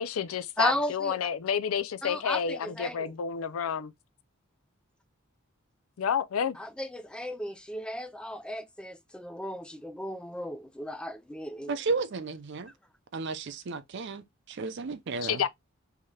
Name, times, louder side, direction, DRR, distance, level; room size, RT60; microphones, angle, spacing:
voice 1, 0.0-3.9 6.0-6.6 15.2-15.5, left 7 dB, 75° left, 0.4 m, -30 dB
voice 2, 0.6-1.2 2.0-3.1 6.6-11.8, equal, 5° left, 0.3 m, -35 dB
voice 3, 11.7-12.7 13.1-15.4, right 4 dB, 55° right, 0.5 m, -33 dB
3.2 x 2.8 x 2.3 m
head